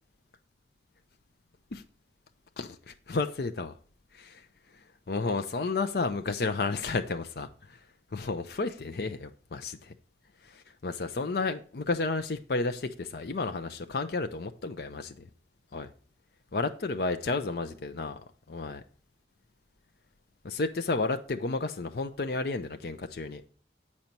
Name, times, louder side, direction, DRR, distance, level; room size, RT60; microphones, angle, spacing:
voice 1, 2.6-3.8 4.1-9.9 10.4-15.3 15.7-15.9 16.5-18.8 20.4-23.4, left 3 dB, 60° left, 0.5 m, -32 dB
8.5 x 5.3 x 4.4 m
head